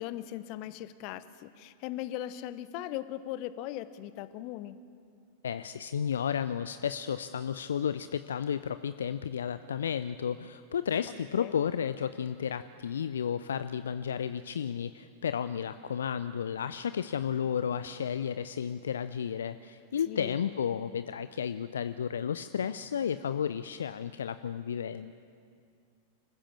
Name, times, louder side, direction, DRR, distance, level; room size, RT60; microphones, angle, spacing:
voice 1, 0.0-4.8 11.4-11.6 20.1-20.4, left 13 dB, 45° left, 14 dB, 0.9 m, -39 dB
voice 2, 5.4-25.1, left 8 dB, 65° left, 12 dB, 0.5 m, -32 dB
26.0 x 15.0 x 7.4 m, 2.3 s
figure-of-eight pair, 90°, 0 cm